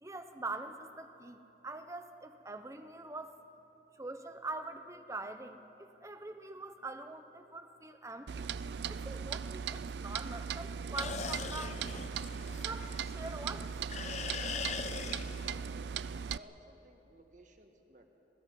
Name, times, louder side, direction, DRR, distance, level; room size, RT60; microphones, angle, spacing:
voice 1, 0.0-3.4 4.0-11.9 12.6-13.7, right 2 dB, 15° right, 8 dB, 0.9 m, -44 dB
Clock, 8.3-16.4, right 6 dB, 75° right, 0.4 m, -39 dB
sound 1, 11.0-13.5 13.9-15.7, left 5 dB, 40° left, 0.8 m, -41 dB
voice 2, 15.3-15.8 16.3-18.1, equal, 45° right, 4 dB, 1.7 m, -58 dB
26.0 x 18.0 x 5.5 m, 3.0 s
head